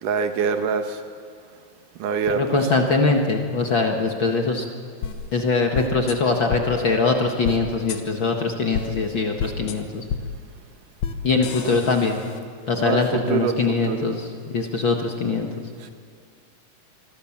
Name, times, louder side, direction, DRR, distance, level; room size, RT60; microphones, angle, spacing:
voice 1, 0.0-1.0 2.0-2.4 11.6-11.7 12.8-13.0 13.3-13.6 13.9-14.1, right 6 dB, 75° right, 7 dB, 2.9 m, -24 dB
voice 2, 2.3-4.7 5.3-10.0 11.2-12.2 12.7-15.7, left 3 dB, 50° left, 3 dB, 1.7 m, -22 dB
sound 1, 5.0-5.1 5.7-6.1 6.5-6.6 7.4-7.6 7.9-8.0 8.7-8.9 9.4-9.7 10.1-10.2 11.0-11.1 11.4-12.4, left 7 dB, 65° left, 2.5 m, -28 dB
26.0 x 23.0 x 7.3 m, 2.2 s
omnidirectional pair, 3.8 m